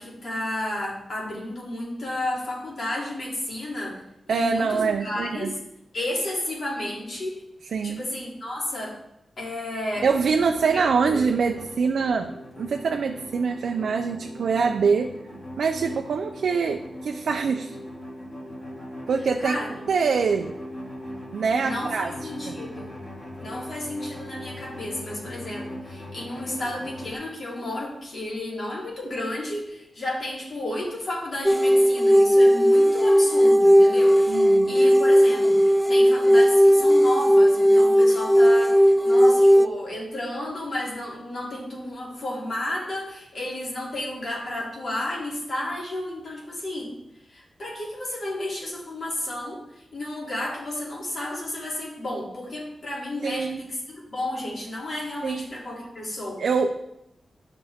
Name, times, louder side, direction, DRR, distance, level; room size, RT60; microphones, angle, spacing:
voice 1, 0.0-4.0 4.3-5.6 5.9-7.4 7.8-9.0 9.4-10.1 10.7-11.2 19.4-19.7 21.6-23.0 23.4-46.9 47.3-56.5, left 1 dB, 55° left, -4 dB, 3.2 m, -32 dB
voice 2, 4.3-5.5 7.7-8.0 10.0-12.3 12.6-15.1 15.6-17.8 19.1-19.6 19.9-20.5 21.3-22.6 34.3-34.8 53.2-53.6 55.2-55.4 56.4-56.7, right 5 dB, 80° right, 3 dB, 0.6 m, -24 dB
sound 1, 9.9-27.1, left 1 dB, 35° left, 3.0 m, -40 dB
sound 2, 31.5-39.7, equal, ahead, 0.4 m, -17 dB
12.0 x 6.0 x 3.6 m, 0.83 s
wide cardioid pair, 120°, 0 cm